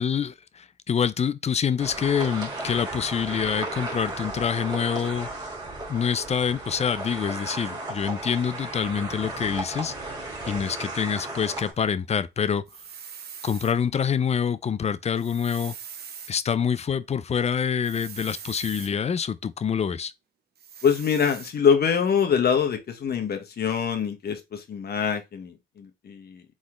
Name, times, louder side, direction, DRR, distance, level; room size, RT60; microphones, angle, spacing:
voice 1, 0.0-5.3 5.9-12.6 13.4-15.7 16.3-20.1, left 7 dB, 35° left, 0.5 m, -26 dB
sound 1, 1.8-11.7, right 2 dB, 20° right, 2.1 m, -35 dB
sound 2, 12.7-13.7 15.1-16.3 17.8-18.9 20.6-21.5, right 7 dB, 55° right, 0.9 m, -42 dB
voice 2, 20.8-26.4, left 7 dB, 50° left, 1.2 m, -24 dB
4.2 x 3.7 x 3.1 m
cardioid pair, 90°, 20 cm